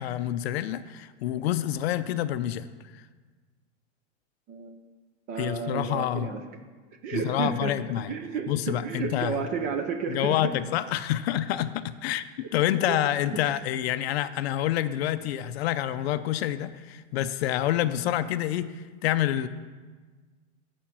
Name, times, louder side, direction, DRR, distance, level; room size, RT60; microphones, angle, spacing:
voice 1, 0.0-2.7 2.9-3.0 5.4-6.3 7.1-8.1 8.5-9.4 10.1-19.5, left 12 dB, 60° left, 13 dB, 0.5 m, -28 dB
voice 2, 4.5-4.8 5.3-6.4 7.0-7.7 8.1-10.4 12.9-13.0, right 6 dB, 20° right, 6 dB, 0.5 m, -31 dB
13.0 x 5.1 x 5.8 m, 1.4 s
supercardioid pair, 170°, 37 cm